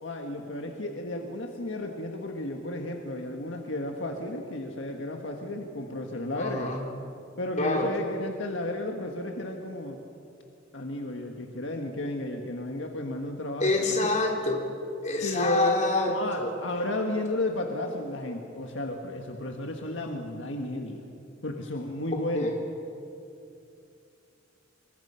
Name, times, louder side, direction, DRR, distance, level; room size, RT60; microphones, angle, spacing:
voice 1, 0.0-6.8 7.4-10.0 10.7-13.7 15.2-15.8 16.1-21.1 21.4-22.5, left 1 dB, 75° left, 3 dB, 1.6 m, -33 dB
voice 2, 6.4-6.8 7.6-7.9 13.6-14.7 15.0-16.5 22.3-22.6, left 2 dB, 40° left, 0 dB, 3.8 m, -27 dB
27.0 x 23.5 x 5.8 m, 2.6 s
head